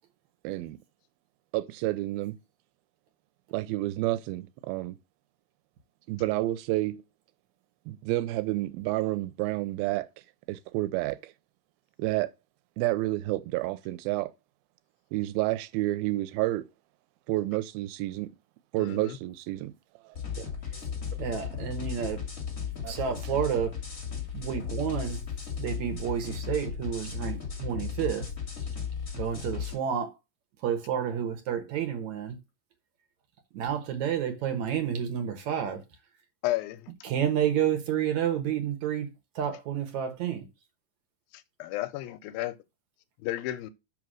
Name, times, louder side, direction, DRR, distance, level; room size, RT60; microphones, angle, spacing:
voice 1, 0.4-0.8 1.5-2.4 3.5-5.0 6.1-7.0 7.9-10.1 10.5-11.3 12.0-12.3 12.8-14.3 15.1-16.7 17.3-18.3 18.7-19.7 20.4-20.5 22.8-23.4, right 17 dB, 85° right, 2.4 m, -30 dB
voice 2, 18.8-19.2 36.4-36.9 41.6-42.6 43.2-43.7, left 15 dB, 80° left, 2.3 m, -32 dB
sound 1, 20.1-29.7, left 7 dB, 25° left, 2.5 m, -35 dB
voice 3, 21.2-22.2 22.9-23.7 24.3-25.2 25.6-28.3 29.1-30.1 30.6-32.4 33.5-35.8 37.0-39.1 39.4-40.4, right 9 dB, 60° right, 2.2 m, -30 dB
5.9 x 5.4 x 6.2 m
omnidirectional pair, 4.2 m